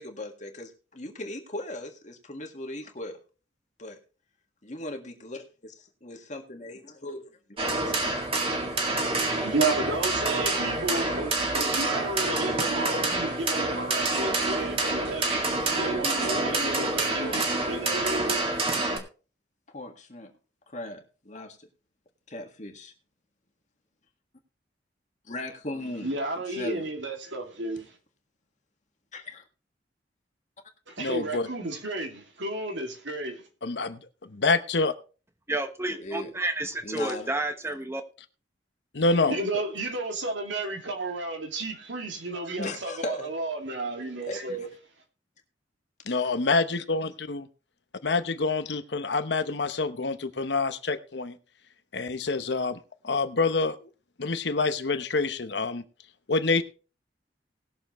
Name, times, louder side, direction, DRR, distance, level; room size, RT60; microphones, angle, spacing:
voice 1, 0.0-3.2 3.8-4.0 4.6-7.2 7.6-8.4 14.3-14.6 15.2-18.9 19.7-20.3 20.7-21.7 22.3-22.9 25.3-26.2 26.5-26.9 29.1-29.4 36.0-36.3 36.8-37.3 42.6-43.3 44.3-44.7 46.1-46.2, left 1 dB, 40° left, 1.8 m, -39 dB
sound 1, 7.6-19.0, right 2 dB, 30° right, 1.9 m, -27 dB
voice 2, 9.1-18.5 26.0-27.9 30.9-33.5 39.3-44.7, right 2 dB, 85° right, 2.4 m, -32 dB
voice 3, 31.0-31.5 33.6-34.9 38.9-39.4 46.1-47.5 48.0-51.3 51.9-52.8 53.0-53.9 54.2-55.8 56.3-56.6, left 3 dB, 65° left, 0.9 m, -27 dB
voice 4, 35.5-38.0, right 2 dB, 15° right, 1.1 m, -30 dB
19.5 x 6.9 x 3.1 m
head